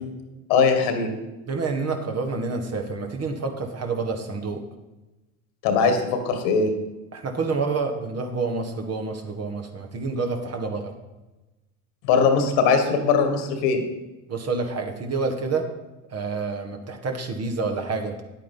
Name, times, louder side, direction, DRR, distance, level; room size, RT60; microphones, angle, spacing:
voice 1, 0.5-1.1 5.6-6.7 12.0-13.8, left 5 dB, 70° left, 7 dB, 2.0 m, -20 dB
voice 2, 1.5-4.6 7.1-10.9 14.3-15.6 16.1-18.2, right 4 dB, 35° right, 4 dB, 1.9 m, -28 dB
10.0 x 8.5 x 5.4 m, 1.1 s
hypercardioid pair, 75°, 41 cm